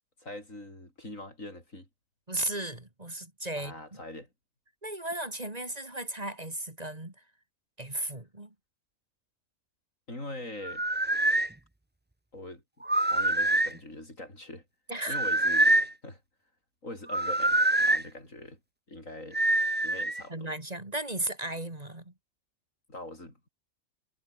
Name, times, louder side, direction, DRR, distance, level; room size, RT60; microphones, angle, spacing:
voice 1, 0.2-1.9 3.6-4.3 10.1-10.9 12.3-12.6 13.0-14.6 15.1-16.2 16.8-18.6 18.9-19.4 19.8-20.5 22.9-23.5, left 1 dB, 90° left, 8.3 m, -43 dB
voice 2, 2.3-4.0 4.8-7.2 7.8-8.5 14.9-15.2 20.3-22.1, right 1 dB, 30° right, 3.3 m, -35 dB
sound 1, 10.6-11.5 12.8-13.8 15.1-15.9 17.1-18.0 19.3-20.2, right 1 dB, 10° right, 0.8 m, -25 dB
omnidirectional pair, 1.3 m